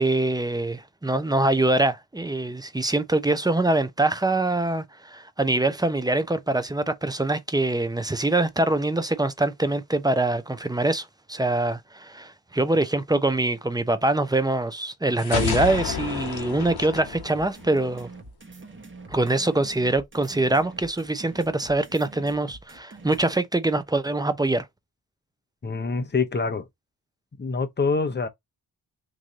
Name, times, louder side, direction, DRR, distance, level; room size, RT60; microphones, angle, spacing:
voice 1, 0.0-18.1 19.1-24.7, right 2 dB, 10° right, 0.5 m, -24 dB
sound 1, 15.2-18.0, left 7 dB, 65° left, 1.1 m, -30 dB
sound 2, 17.1-23.2, right 3 dB, 30° right, 1.0 m, -45 dB
voice 2, 25.6-26.7 27.4-28.3, left 4 dB, 25° left, 0.7 m, -25 dB
3.2 x 2.6 x 3.6 m
wide cardioid pair, 90°, 40 cm